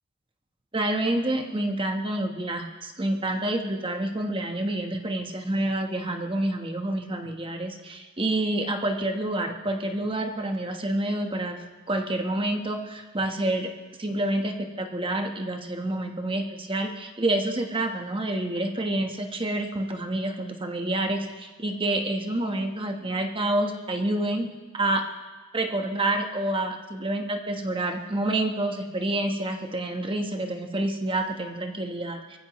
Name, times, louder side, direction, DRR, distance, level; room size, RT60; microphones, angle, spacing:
voice 1, 0.7-11.6 11.9-13.7 14.0-24.5 24.7-25.0 25.5-32.4, right 1 dB, 25° right, 4 dB, 1.2 m, -28 dB
23.5 x 15.0 x 3.1 m, 1.3 s
head